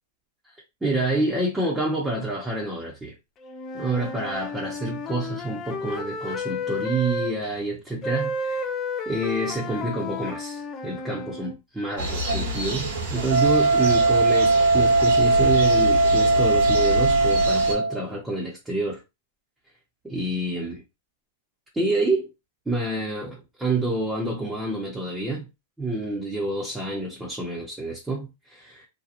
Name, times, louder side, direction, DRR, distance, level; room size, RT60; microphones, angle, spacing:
voice 1, 0.8-3.1 3.7-8.7 9.1-19.0 20.0-20.8 21.7-22.3 22.7-25.5 25.8-28.9, right 2 dB, 10° right, 0.8 m, -28 dB
Wind instrument woodwind instrument, 3.4-7.3 8.0-11.5, left 2 dB, 30° left, 0.4 m, -32 dB
sound 1, 12.0-17.7, right 1 dB, 75° right, 1.2 m, -29 dB
Wind instrument woodwind instrument 2, 13.3-18.0, right 2 dB, 55° right, 0.6 m, -19 dB
2.9 x 2.3 x 2.5 m
hypercardioid pair, 120°, 0 cm